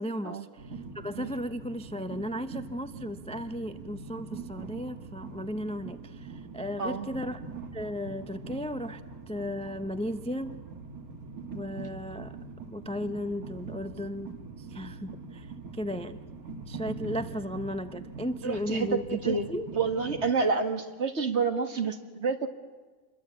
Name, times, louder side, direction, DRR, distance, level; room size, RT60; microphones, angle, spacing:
voice 1, 0.0-7.4 7.7-9.0 9.3-10.5 11.5-12.4 12.7-16.2 16.7-19.7, equal, 5° left, 9 dB, 0.4 m, -35 dB
Train, 0.6-20.3, right 4 dB, 80° right, 2.5 m, -43 dB
voice 2, 18.4-19.0 19.2-19.5 19.7-22.5, right 4 dB, 50° right, 6 dB, 2.1 m, -28 dB
27.5 x 22.0 x 8.5 m, 1.4 s
omnidirectional pair, 1.5 m